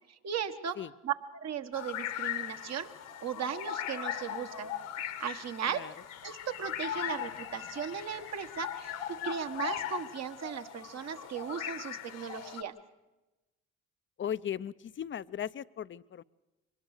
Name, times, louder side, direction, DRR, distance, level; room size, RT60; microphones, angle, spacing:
voice 1, 0.1-0.8 1.0-2.9 3.2-4.7 5.0-5.9 6.2-8.9 9.2-12.7, right 8 dB, 55° right, 8 dB, 1.5 m, -37 dB
sound 1, 1.7-12.6, left 11 dB, 75° left, 1.6 m, -39 dB
voice 2, 14.2-16.2, left 9 dB, 40° left, 16 dB, 0.6 m, -37 dB
24.0 x 20.0 x 6.6 m, 1.0 s
supercardioid pair, 60°, 31 cm